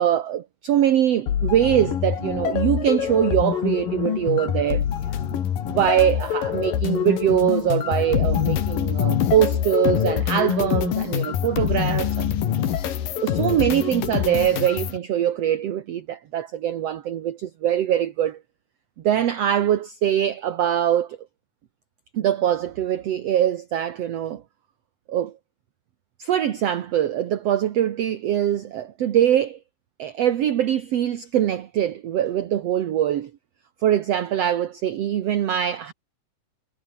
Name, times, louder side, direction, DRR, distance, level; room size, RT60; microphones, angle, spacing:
voice 1, 0.0-4.9 5.3-5.4 5.7-12.3 13.2-18.4 19.0-21.2 22.1-24.4 25.1-25.3 26.2-29.6 30.0-33.3 33.8-35.9, right 10 dB, 60° right, 2.0 m, -23 dB
sound 1, 1.3-15.0, left 9 dB, 85° left, 3.9 m, -25 dB
omnidirectional pair, 3.9 m